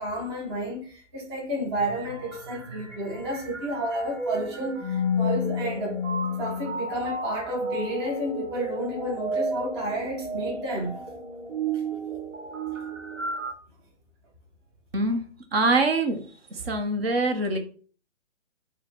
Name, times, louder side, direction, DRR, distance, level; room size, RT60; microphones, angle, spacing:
voice 1, 0.0-6.0 6.4-11.0, right 1 dB, 20° right, 0.5 m, -31 dB
sound 1, 1.8-13.5, left 1 dB, 85° right, 1.1 m, -32 dB
voice 2, 14.9-15.3 15.5-16.2 16.5-17.6, right 2 dB, 55° right, 0.9 m, -24 dB
4.6 x 2.1 x 3.5 m
hypercardioid pair, 150°, 36 cm